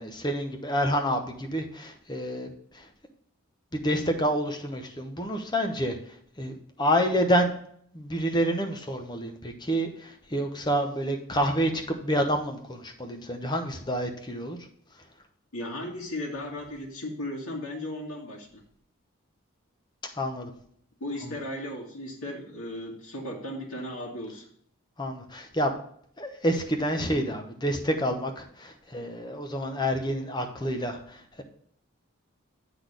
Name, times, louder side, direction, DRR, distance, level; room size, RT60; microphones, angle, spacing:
voice 1, 0.0-2.5 2.7-2.9 3.7-6.0 6.4-7.5 7.9-14.6 20.2-20.5 21.2-21.3 25.0-25.7 26.2-31.4, equal, 20° left, 4 dB, 0.9 m, -28 dB
voice 2, 15.5-18.6 21.0-24.4, left 1 dB, 85° left, -2 dB, 1.7 m, -36 dB
7.8 x 4.1 x 6.6 m, 0.63 s
head